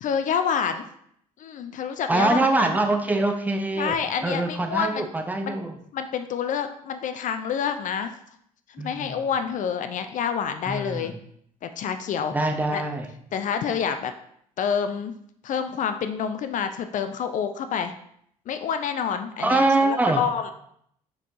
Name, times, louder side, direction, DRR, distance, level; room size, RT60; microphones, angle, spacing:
voice 1, 0.0-0.8 1.4-2.7 3.8-5.1 5.5-5.6 5.9-8.1 8.7-11.1 11.6-12.3 12.7-12.8 13.3-14.1 14.6-15.1 15.4-17.9 18.5-20.5, left 7 dB, 45° left, 8 dB, 0.4 m, -28 dB
voice 2, 2.1-4.0 4.2-5.8 8.8-9.2 10.7-11.1 12.3-13.1 19.4-20.2, right 2 dB, 10° right, 4 dB, 0.7 m, -24 dB
4.6 x 4.1 x 2.7 m, 0.68 s
figure-of-eight pair, 50°, 19 cm